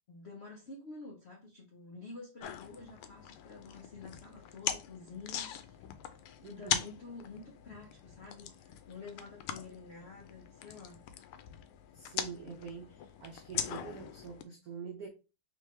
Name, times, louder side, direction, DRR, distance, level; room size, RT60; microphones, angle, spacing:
voice 1, 0.1-5.8 6.5-11.0, left 3 dB, 70° left, 0.6 m, -49 dB
sound 1, 2.4-14.4, left 9 dB, 85° left, 1.5 m, -41 dB
voice 2, 6.4-6.8 11.9-15.1, right 6 dB, 65° right, 0.9 m, -45 dB
3.6 x 3.5 x 3.2 m
omnidirectional pair, 2.4 m